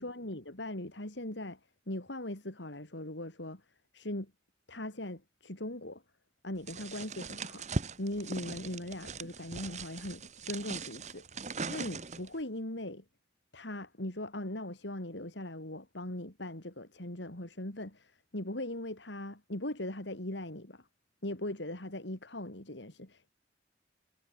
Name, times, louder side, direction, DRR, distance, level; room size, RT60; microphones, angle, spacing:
voice 1, 0.0-1.6 1.9-3.6 3.9-4.3 4.7-6.0 6.4-7.6 8.0-11.3 11.7-13.0 13.5-20.8 21.2-23.3, left 1 dB, 75° left, 3.7 m, -40 dB
sound 1, 6.7-12.4, right 3 dB, 40° right, 2.0 m, -40 dB
head